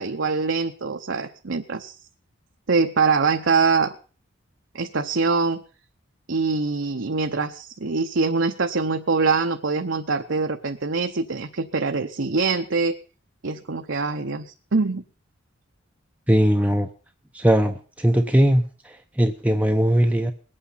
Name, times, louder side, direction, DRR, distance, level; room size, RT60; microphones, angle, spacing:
voice 1, 0.0-1.9 2.7-3.9 4.7-5.6 6.3-12.9 13.4-14.5 14.7-15.0, right 4 dB, 65° right, 4 dB, 0.8 m, -23 dB
voice 2, 16.3-16.9 17.3-20.3, equal, 5° right, 5 dB, 0.7 m, -20 dB
21.0 x 8.8 x 5.6 m, 0.40 s
head